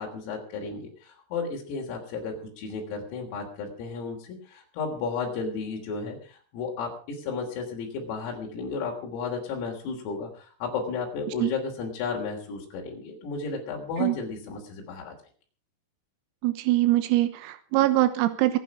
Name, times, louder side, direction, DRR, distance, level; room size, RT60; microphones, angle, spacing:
voice 1, 0.0-15.1, left 4 dB, 85° left, 0 dB, 6.1 m, -33 dB
voice 2, 16.4-18.6, right 16 dB, 90° right, 10 dB, 3.8 m, -23 dB
24.5 x 9.1 x 5.0 m, 0.42 s
omnidirectional pair, 6.0 m